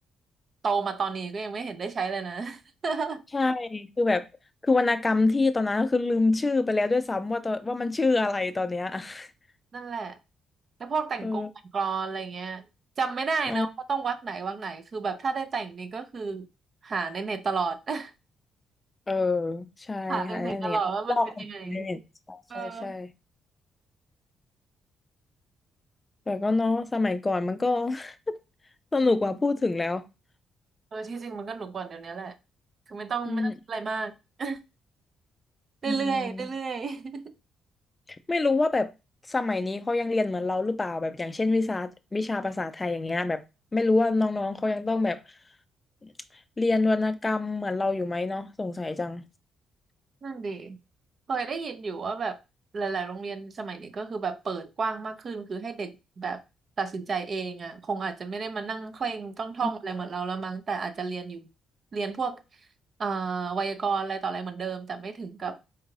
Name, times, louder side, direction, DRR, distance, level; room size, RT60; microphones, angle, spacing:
voice 1, 0.6-3.2 9.7-10.2 10.8-11.5 11.7-12.6 13.0-16.5 16.8-18.1 20.1-21.9 22.5-23.0 30.9-32.3 32.9-34.1 34.4-34.6 35.8-37.2 50.2-50.8 51.3-52.4 52.7-56.4 56.8-61.5 61.9-62.4 63.0-65.6, right 5 dB, 45° right, 0.6 m, -31 dB
voice 2, 3.3-4.3 4.6-9.3 11.2-11.5 13.5-13.7 19.1-20.8 21.1-21.3 21.6-22.0 22.3-23.1 26.3-28.1 28.9-30.0 33.3-33.5 35.9-36.5 38.3-38.9 39.3-43.4 43.7-45.2 46.6-49.2, left 3 dB, 20° left, 0.3 m, -26 dB
4.5 x 2.4 x 3.1 m
cardioid pair, 90°, 0 cm